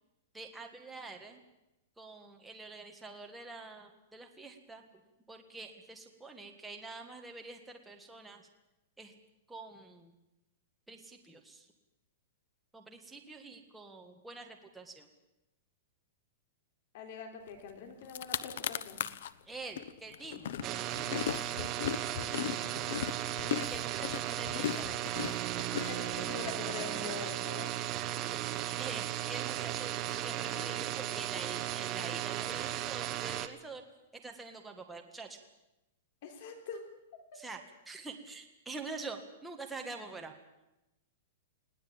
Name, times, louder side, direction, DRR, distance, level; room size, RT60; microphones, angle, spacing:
voice 1, 0.3-1.4 2.0-5.0 5.3-8.5 9.0-9.1 9.5-10.1 10.9-11.7 12.7-15.1 19.5-21.5 23.7-25.1 28.8-33.8 34.1-35.4 37.3-40.3, right 3 dB, 5° right, 2 dB, 1.7 m, -46 dB
voice 2, 16.9-19.0 25.9-27.7 36.2-36.9 37.3-37.4 39.0-39.1, left 5 dB, 50° left, 6 dB, 3.8 m, -43 dB
sound 1, 17.7-17.8 18.0-19.3 19.8-26.5, left 10 dB, 65° left, 0.9 m, -37 dB
sound 2, 20.6-33.5, right 13 dB, 25° right, 1.1 m, -36 dB
sound 3, 20.6-21.4 22.3-23.1 25.1-25.9 26.8-27.6 29.6-30.4, right 6 dB, 60° right, 5.0 m, -63 dB
20.5 x 18.0 x 8.9 m, 0.93 s
supercardioid pair, 165°, 0 cm